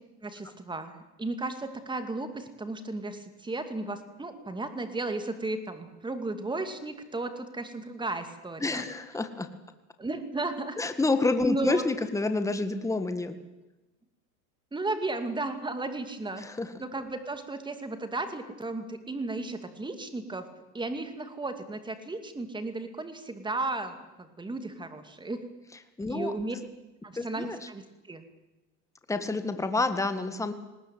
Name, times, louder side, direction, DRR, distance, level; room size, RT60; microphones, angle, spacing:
voice 1, 0.2-8.8 10.0-10.8 11.4-11.8 14.7-16.4 16.8-20.5 20.7-25.4 26.1-26.6 27.0-28.2, right 2 dB, 10° right, 8 dB, 2.5 m, -34 dB
voice 2, 8.6-9.5 10.8-13.3 16.4-16.7 26.0-26.3 27.1-27.7 29.1-30.5, left 3 dB, 5° left, 9 dB, 1.7 m, -28 dB
19.5 x 19.0 x 9.3 m, 1.0 s
supercardioid pair, 120°, 50 cm